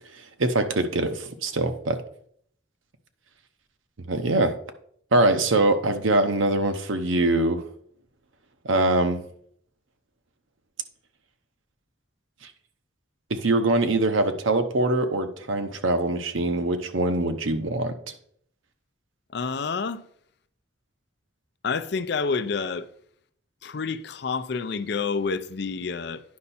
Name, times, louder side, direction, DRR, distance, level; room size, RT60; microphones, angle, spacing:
voice 1, 0.4-2.0 4.1-4.5 5.1-7.6 8.6-9.2 13.3-17.9, right 2 dB, 90° right, 0.8 m, -23 dB
voice 2, 19.3-20.0 21.6-22.9 23.6-26.2, left 5 dB, 55° left, 0.5 m, -28 dB
9.5 x 5.5 x 4.2 m
head